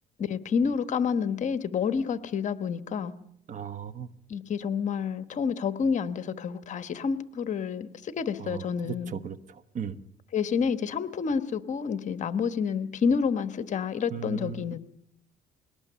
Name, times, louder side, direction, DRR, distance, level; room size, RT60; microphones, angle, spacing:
voice 1, 0.2-3.1 4.3-9.1 10.3-14.8, left 6 dB, 45° left, 1.2 m, -29 dB
voice 2, 3.5-4.1 8.4-9.4 9.7-10.0 14.1-14.6, right 7 dB, 45° right, 1.2 m, -36 dB
22.0 x 18.5 x 6.9 m
cardioid pair, 110°, 17 cm